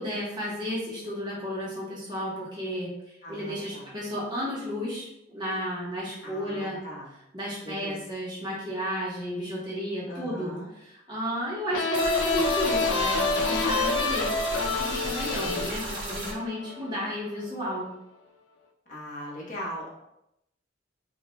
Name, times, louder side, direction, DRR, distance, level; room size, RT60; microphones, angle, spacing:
voice 1, 0.0-2.9 3.3-6.8 7.3-17.9, equal, 20° right, -6 dB, 1.2 m, -33 dB
voice 2, 3.2-3.9 6.2-7.1 7.6-8.0 10.1-10.7 18.9-19.9, equal, 40° left, -5 dB, 1.1 m, -40 dB
sound 1, 11.7-17.2, left 3 dB, 80° left, 0.5 m, -28 dB
sound 2, 11.9-16.3, right 1 dB, 80° right, 1.0 m, -35 dB
4.9 x 2.6 x 2.2 m, 0.83 s
head